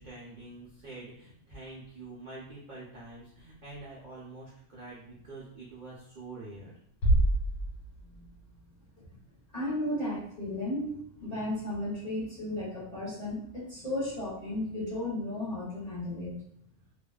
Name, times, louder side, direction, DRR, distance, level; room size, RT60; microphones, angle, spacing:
voice 1, 0.0-6.7, right 2 dB, 75° right, -6 dB, 0.4 m, -46 dB
Bass drum, 7.0-8.4, right 1 dB, 90° left, 1.1 m, -26 dB
voice 2, 8.0-8.3 9.5-16.4, left 1 dB, 35° left, -9 dB, 0.7 m, -34 dB
2.6 x 2.2 x 2.3 m, 0.67 s
omnidirectional pair, 1.6 m